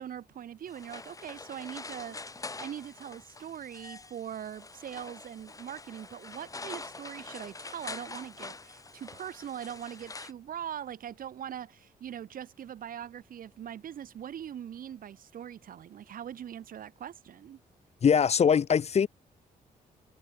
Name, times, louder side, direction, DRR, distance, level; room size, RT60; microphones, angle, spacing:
voice 1, 0.0-17.6, right 9 dB, 70° right, 4.7 m, -42 dB
sound 1, 0.7-10.3, left 3 dB, 20° left, 3.5 m, -45 dB
voice 2, 18.0-19.1, left 7 dB, 45° left, 1.2 m, -22 dB
cardioid pair, 115°, 15 cm